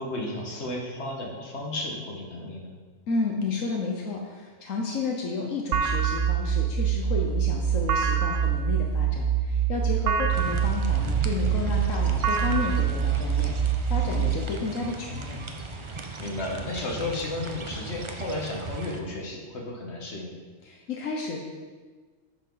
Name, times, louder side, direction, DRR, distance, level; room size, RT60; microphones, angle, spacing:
voice 1, 0.0-2.7 14.0-14.3 16.2-20.3, left 2 dB, 55° left, 0 dB, 1.8 m, -33 dB
voice 2, 3.1-13.5 13.9-15.4 20.6-21.4, left 4 dB, 80° left, 0 dB, 1.4 m, -31 dB
sound 1, 5.7-14.4, right 8 dB, 75° right, 1.0 m, -25 dB
sound 2, 10.3-19.0, right 3 dB, 30° right, 0.6 m, -37 dB
11.0 x 7.4 x 3.9 m, 1.4 s
omnidirectional pair, 1.3 m